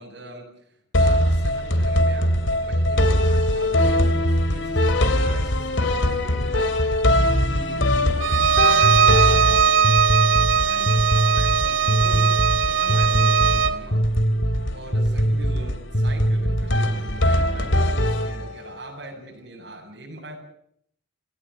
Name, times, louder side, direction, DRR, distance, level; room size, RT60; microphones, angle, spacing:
voice 1, 0.0-12.3 12.6-14.1 14.7-20.4, right 1 dB, 65° right, 1 dB, 7.4 m, -41 dB
sound 1, 0.9-18.8, equal, 80° left, 2.9 m, -21 dB
Bowed string instrument, 8.2-13.8, right 7 dB, 85° right, 1.1 m, -19 dB
28.0 x 18.0 x 7.7 m, 0.70 s
head